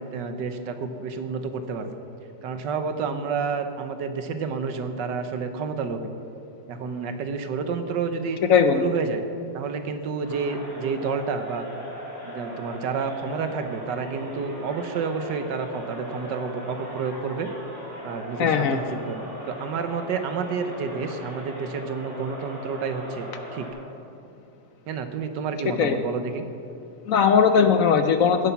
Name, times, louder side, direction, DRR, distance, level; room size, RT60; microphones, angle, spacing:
voice 1, 0.0-2.0 2.4-6.1 6.7-8.4 8.7-9.2 9.5-11.7 12.2-17.5 18.0-23.7 24.9-26.4, right 5 dB, 85° right, 8 dB, 1.6 m, -30 dB
voice 2, 8.5-8.8 18.4-19.0 25.8-25.9 27.1-28.5, left 6 dB, 65° left, 8 dB, 0.8 m, -19 dB
sound 1, 10.2-23.7, equal, 25° right, 3.8 m, -39 dB
16.0 x 8.4 x 5.8 m, 2.8 s
omnidirectional pair, 1.9 m